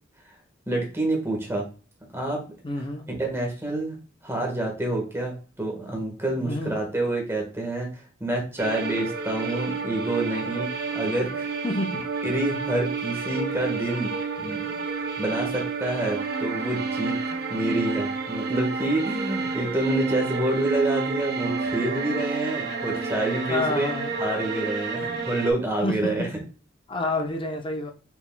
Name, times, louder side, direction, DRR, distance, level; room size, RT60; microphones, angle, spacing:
voice 1, 0.7-1.7 2.1-2.4 3.1-4.0 4.2-11.6 12.2-14.7 15.2-17.1 17.5-26.2, right 2 dB, 15° right, 0 dB, 1.5 m, -28 dB
voice 2, 2.6-3.0 6.4-6.7 11.6-12.0 17.3-17.4 23.5-24.1 25.0-25.3 25.8-26.3 26.9-27.9, left 2 dB, 25° left, 4 dB, 0.7 m, -29 dB
sound 1, 8.6-25.5, right 4 dB, 55° right, 0.8 m, -30 dB
5.8 x 4.1 x 2.2 m, 0.36 s
head